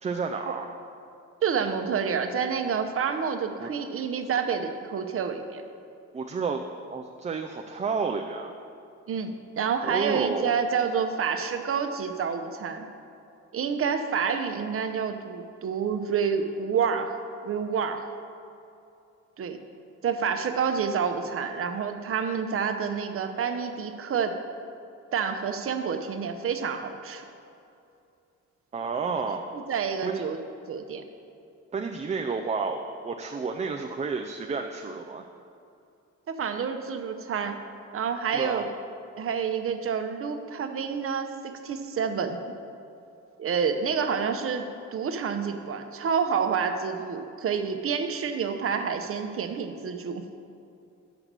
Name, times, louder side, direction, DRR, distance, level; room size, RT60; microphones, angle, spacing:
voice 1, 0.0-0.7 3.6-3.7 6.1-6.6 6.9-8.5 9.8-10.6 28.7-29.5 30.0-30.2 31.7-35.2 38.3-38.6, right 5 dB, 25° right, 3 dB, 0.4 m, -31 dB
voice 2, 1.4-5.6 9.1-12.9 13.5-17.2 17.4-18.1 19.4-19.6 20.0-24.4 25.1-27.2 29.1-29.2 29.5-30.4 30.7-31.0 36.3-37.6 37.9-38.7 39.2-41.3 41.6-42.4 43.4-50.2, right 6 dB, 45° right, 7 dB, 0.7 m, -28 dB
6.1 x 5.8 x 6.7 m, 2.6 s
cardioid pair, 90°, 30 cm